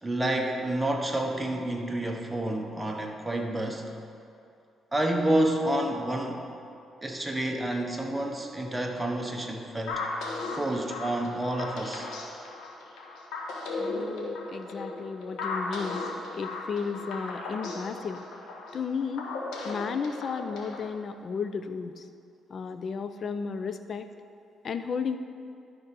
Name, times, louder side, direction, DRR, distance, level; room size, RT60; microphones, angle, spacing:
voice 1, 0.0-3.9 4.9-6.5 7.0-10.0 10.5-12.1, right 1 dB, 10° right, 2 dB, 1.0 m, -29 dB
sound 1, 9.9-20.9, left 3 dB, 85° left, 1.4 m, -36 dB
voice 2, 13.8-16.0 16.3-18.2 18.7-19.2 19.6-22.0 22.5-24.1 24.6-25.2, left 5 dB, 50° left, 9 dB, 0.5 m, -33 dB
11.5 x 4.3 x 5.2 m, 2.6 s
cardioid pair, 90°, 0 cm